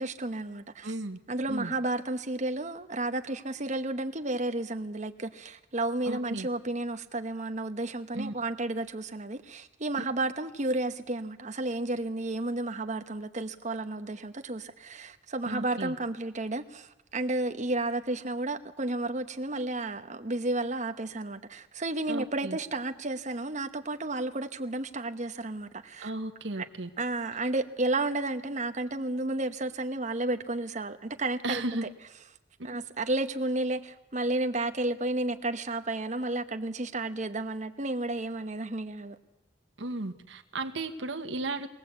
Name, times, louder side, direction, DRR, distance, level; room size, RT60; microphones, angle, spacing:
voice 1, 0.0-0.9 1.3-26.1 26.6-26.7 27.0-31.9 32.6-39.1, right 2 dB, 40° right, 1.1 m, -32 dB
voice 2, 0.8-1.2 1.5-1.7 6.1-6.5 8.1-8.3 15.5-15.9 22.1-22.6 26.0-26.9 31.4-31.9 39.8-41.7, right 2 dB, 75° right, 1.4 m, -34 dB
22.0 x 17.5 x 8.2 m
head